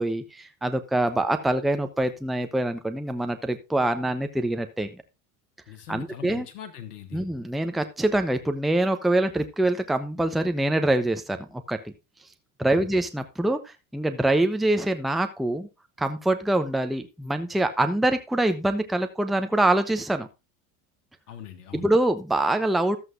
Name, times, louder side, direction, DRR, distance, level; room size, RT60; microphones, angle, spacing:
voice 1, 0.0-4.9 5.9-6.5 7.1-11.9 12.6-15.7 16.0-20.3 21.7-23.0, right 1 dB, ahead, 8 dB, 0.9 m, -25 dB
voice 2, 5.7-7.2 12.6-12.9 21.3-21.9, left 10 dB, 85° left, 6 dB, 1.3 m, -42 dB
13.5 x 7.8 x 2.6 m, 0.25 s
hypercardioid pair, 85°, 45 cm